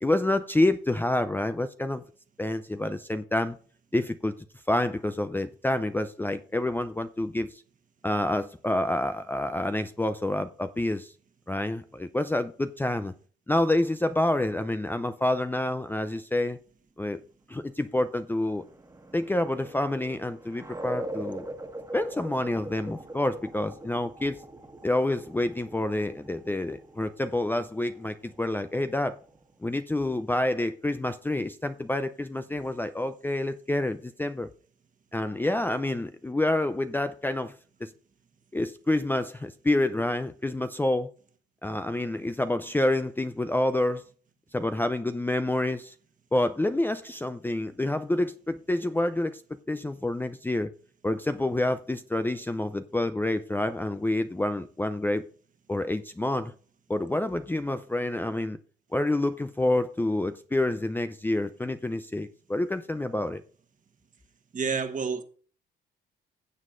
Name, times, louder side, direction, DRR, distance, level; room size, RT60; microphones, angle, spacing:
voice 1, 0.0-2.0 2.4-3.6 3.9-4.3 4.7-7.6 8.0-11.1 11.5-13.1 13.5-16.6 17.0-17.2 17.5-18.6 19.1-21.5 21.9-24.4 24.8-29.2 29.6-34.5 35.1-37.5 37.8-37.9 38.5-41.1 41.6-44.0 44.5-45.9 46.3-49.4 49.7-50.7 51.0-55.2 55.7-56.5 56.9-58.6 58.9-63.4, left 1 dB, 10° left, 0.5 m, -28 dB
sound 1, 18.1-29.5, right 1 dB, 15° right, 1.5 m, -43 dB
voice 2, 64.5-65.2, right 5 dB, 40° right, 1.3 m, -29 dB
16.0 x 7.3 x 2.5 m
cardioid pair, 90°, 20 cm